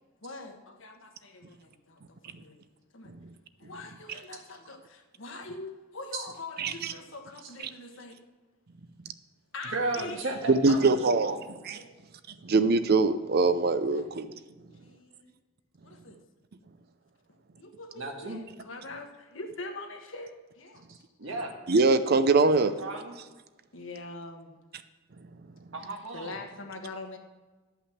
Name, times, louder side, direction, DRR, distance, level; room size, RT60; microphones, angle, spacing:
voice 1, 0.2-2.6 2.9-3.1 3.6-8.2 9.5-10.3 10.7-10.8 11.7-12.0 13.9-14.1 14.8-15.3 15.8-16.2 17.6-20.8 23.7-24.6 26.1-27.2, left 2 dB, 75° left, 4 dB, 1.4 m, -43 dB
voice 2, 6.6-6.9 10.5-11.4 11.7-11.8 12.4-14.3 21.7-22.7, right 3 dB, 50° right, 12 dB, 0.5 m, -23 dB
voice 3, 9.6-11.4 17.9-18.4 20.9-21.6 22.4-23.2 25.7-26.4, right 2 dB, 75° right, 2 dB, 1.8 m, -35 dB
11.5 x 5.7 x 7.3 m, 1.3 s
head